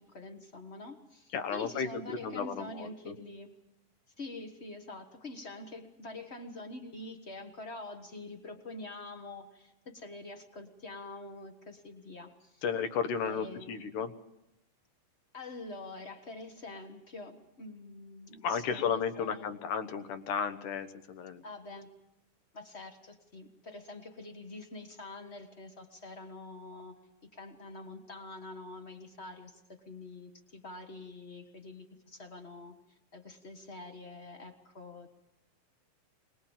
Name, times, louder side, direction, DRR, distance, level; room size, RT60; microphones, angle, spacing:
voice 1, 0.0-3.5 4.2-12.6 13.2-13.8 15.3-19.5 21.4-21.9 22.5-32.8 33.1-35.1, left 2 dB, 45° left, 6 dB, 0.8 m, -46 dB
voice 2, 1.3-3.1 12.6-14.1 18.4-21.4, left 6 dB, 75° left, 10 dB, 2.7 m, -33 dB
22.5 x 21.0 x 7.2 m, 0.87 s
omnidirectional pair, 3.8 m